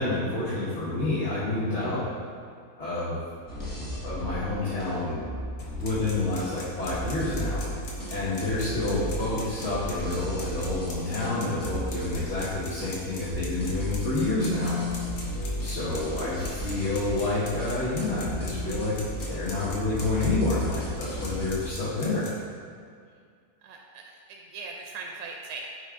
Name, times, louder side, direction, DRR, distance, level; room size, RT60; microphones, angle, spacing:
voice 1, 0.0-2.0 2.8-3.3 4.0-5.3 5.8-7.7 8.1-14.8 15.6-18.9 19.3-22.3, left 2 dB, 50° left, -11 dB, 1.5 m, -29 dB
sound 1, 3.5-21.7, equal, 15° left, 0.9 m, -35 dB
sound 2, 5.6-22.3, left 3 dB, 80° left, 1.5 m, -42 dB
sound 3, 9.7-11.6 13.7-15.4 17.4-19.7, left 4 dB, 10° right, 1.1 m, -39 dB
voice 2, 23.6-25.6, right 4 dB, 90° right, 1 dB, 1.2 m, -40 dB
9.1 x 3.7 x 3.5 m, 2.2 s
omnidirectional pair, 1.6 m